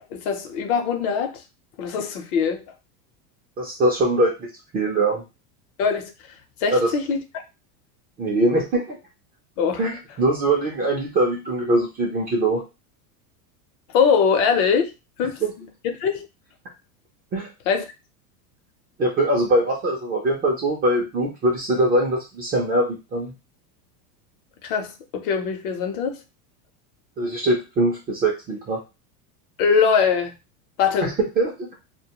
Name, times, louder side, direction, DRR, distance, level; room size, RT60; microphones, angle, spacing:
voice 1, 0.1-1.4 1.8-2.6 5.8-6.1 6.6-7.2 9.6-9.8 13.9-14.9 15.2-15.4 15.8-16.3 17.7-17.8 24.6-26.2 29.6-30.3 30.8-31.1, left 6 dB, 65° left, 0.7 m, -22 dB
voice 2, 3.6-4.5 4.7-5.2 6.7-6.9 8.2-9.0 9.8-12.6 15.4-15.5 17.3-17.5 19.0-23.3 27.2-28.8 31.0-31.7, right 1 dB, 20° right, 0.3 m, -22 dB
2.2 x 2.2 x 2.8 m
supercardioid pair, 130°, 47 cm